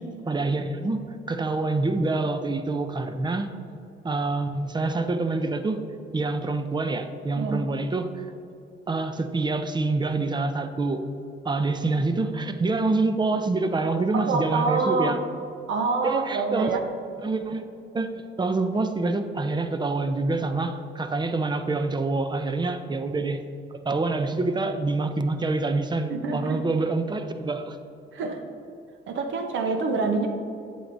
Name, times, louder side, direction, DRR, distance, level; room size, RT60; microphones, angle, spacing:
voice 1, 0.3-3.5 4.0-5.8 6.1-8.3 8.9-11.0 11.4-15.2 16.0-16.9 17.2-17.7 17.9-23.4 23.7-27.8, right 3 dB, 20° right, 8 dB, 0.5 m, -26 dB
voice 2, 14.1-15.2 15.7-16.8 26.1-26.6 28.1-28.4 29.1-30.3, right 4 dB, 75° right, 4 dB, 0.9 m, -26 dB
8.0 x 7.7 x 2.6 m, 2.7 s
cardioid pair, 90°, 20 cm